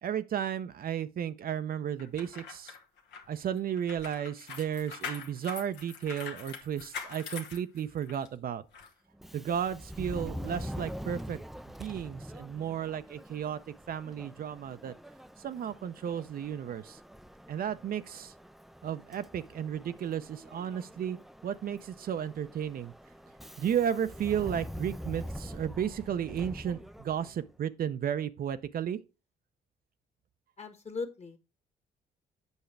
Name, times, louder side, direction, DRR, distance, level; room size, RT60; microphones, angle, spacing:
voice 1, 0.0-2.7 3.3-8.6 9.3-11.4 11.8-13.6 13.9-14.9 15.4-17.0 17.5-18.3 18.8-21.2 21.4-22.9 23.6-29.0, right 9 dB, 55° right, 0.5 m, -33 dB
sound 1, 2.0-8.3 8.7-8.9, left 6 dB, 80° left, 1.2 m, -43 dB
Subway metro underground, 9.1-27.5, equal, ahead, 0.3 m, -44 dB
voice 2, 30.6-31.4, left 4 dB, 35° left, 1.5 m, -38 dB
8.0 x 5.7 x 3.3 m
supercardioid pair, 60°, 18 cm